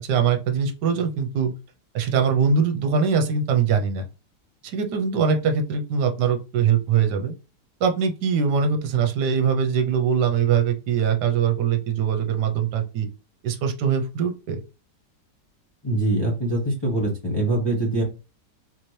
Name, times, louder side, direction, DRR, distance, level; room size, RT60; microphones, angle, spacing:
voice 1, 0.0-1.5 1.9-4.1 4.6-7.4 7.8-13.1 13.4-14.6, right 6 dB, 75° right, 5 dB, 1.4 m, -22 dB
voice 2, 15.8-18.0, right 2 dB, 20° left, -4 dB, 0.9 m, -23 dB
4.0 x 2.9 x 3.2 m, 0.30 s
omnidirectional pair, 1.9 m